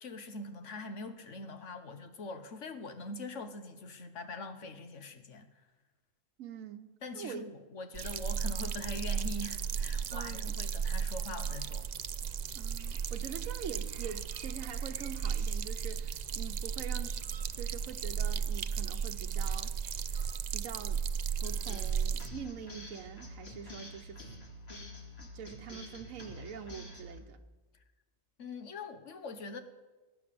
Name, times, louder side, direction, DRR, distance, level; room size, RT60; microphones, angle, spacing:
voice 1, 0.0-5.5 7.0-11.9 28.4-29.6, left 2 dB, 65° left, 9 dB, 1.5 m, -43 dB
voice 2, 6.4-7.4 10.1-10.5 12.5-17.2 17.5-19.7 20.1-20.2 20.5-21.1 21.4-24.2 25.2-27.4, right 8 dB, 85° right, 6 dB, 1.2 m, -45 dB
sound 1, 7.9-22.3, right 7 dB, 60° right, 0.4 m, -35 dB
sound 2, 21.4-27.2, left 1 dB, 50° left, 2.3 m, -47 dB
19.5 x 9.7 x 6.9 m, 1.2 s
omnidirectional pair, 1.4 m